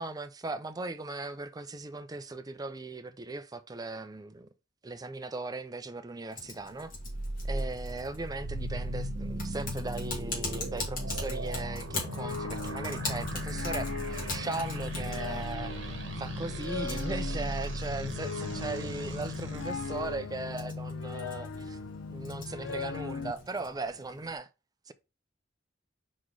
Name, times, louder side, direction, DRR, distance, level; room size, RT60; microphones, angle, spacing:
voice 1, 0.0-4.5 4.8-6.9 7.4-21.8 22.1-24.5 24.9-25.0, right 3 dB, 20° right, 0.5 m, -38 dB
Typing, 6.3-24.3, left 3 dB, 45° left, 2.5 m, -43 dB
sound 1, 6.9-20.1, right 1 dB, 70° right, 1.4 m, -37 dB
sound 2, 11.6-23.3, left 4 dB, 85° left, 0.5 m, -38 dB
5.0 x 4.2 x 4.6 m
head